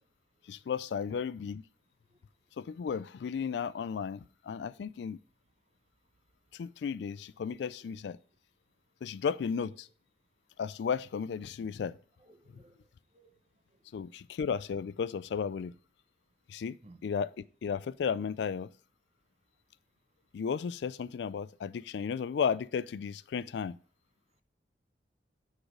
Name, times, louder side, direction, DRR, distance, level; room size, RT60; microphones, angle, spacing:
voice 1, 0.5-1.6 2.6-5.2 6.5-8.2 9.0-9.9 10.6-12.0 13.9-15.7 16.5-16.8 17.0-17.3 17.6-18.7 20.3-23.8, left 6 dB, 80° left, 0.3 m, -34 dB
voice 2, 12.2-13.3 13.7-13.8 16.8-17.0, right 2 dB, 35° right, 0.7 m, -59 dB
6.4 x 4.9 x 4.9 m
head